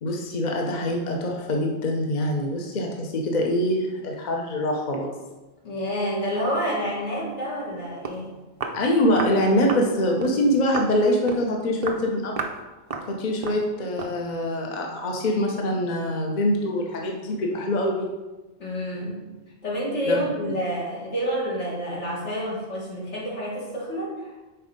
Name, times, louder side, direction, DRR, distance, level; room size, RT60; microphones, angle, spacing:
voice 1, 0.0-5.1 8.7-12.4 13.1-18.1 20.1-20.2, left 1 dB, 45° left, 0 dB, 0.8 m, -24 dB
voice 2, 5.6-8.4 18.6-19.2 19.6-24.3, equal, 80° left, -7 dB, 2.4 m, -28 dB
Walk footsteps, 7.7-7.8 8.0-8.2 8.6-8.8 9.2-9.4 9.7-9.9 10.2-10.4 10.7-10.9 11.3-11.5 11.8-12.0 12.4-12.6 12.9-13.1 13.4-13.6 14.0-14.2, right 4 dB, 45° right, 0.5 m, -32 dB
5.8 x 4.0 x 5.0 m, 1.1 s
omnidirectional pair, 1.2 m